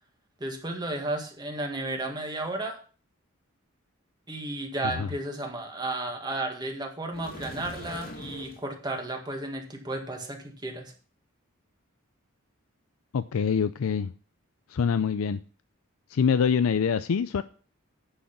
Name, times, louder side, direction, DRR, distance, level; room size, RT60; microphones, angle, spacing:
voice 1, 0.4-2.8 4.3-10.9, right 2 dB, 20° right, 1.8 m, -33 dB
sound 1, 7.1-8.7, left 1 dB, 45° left, 2.0 m, -41 dB
voice 2, 13.1-14.1 14.7-15.4 16.1-17.4, left 6 dB, 90° left, 0.4 m, -25 dB
9.8 x 6.4 x 5.8 m
head